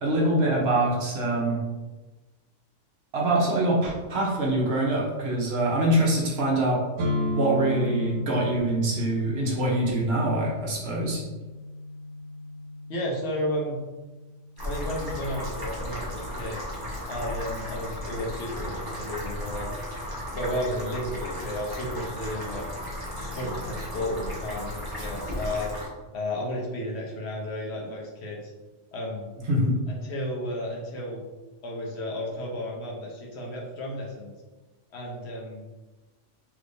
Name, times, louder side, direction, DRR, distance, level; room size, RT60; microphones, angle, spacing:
voice 1, 0.0-1.6 3.1-6.8 7.3-11.2 29.5-29.7, right 1 dB, 60° right, -3 dB, 0.9 m, -24 dB
sound 1, 7.0-14.7, left 2 dB, 85° right, 1.0 m, -34 dB
voice 2, 12.9-13.8 14.6-16.6 17.1-19.7 20.3-22.7 23.2-25.7 26.1-28.5 28.9-29.3 29.9-31.2 31.6-34.3 34.9-35.6, left 1 dB, 65° left, -2 dB, 0.9 m, -33 dB
sound 2, 14.6-25.9, left 1 dB, 20° right, 0.8 m, -35 dB
3.4 x 3.0 x 2.5 m, 1.2 s
omnidirectional pair, 1.3 m